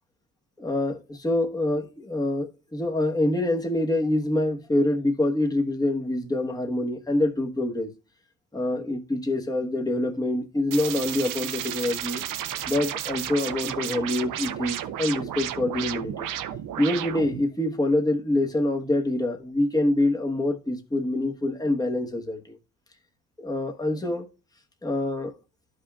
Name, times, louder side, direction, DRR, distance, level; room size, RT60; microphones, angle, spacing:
voice 1, 0.6-7.9 8.5-12.2 12.7-16.3 16.8-22.6 23.4-24.3 24.8-25.3, left 1 dB, 10° left, 1.1 m, -26 dB
sound 1, 10.7-17.4, right 11 dB, 75° right, 0.7 m, -33 dB
13.0 x 5.2 x 2.3 m
cardioid pair, 145°, 32 cm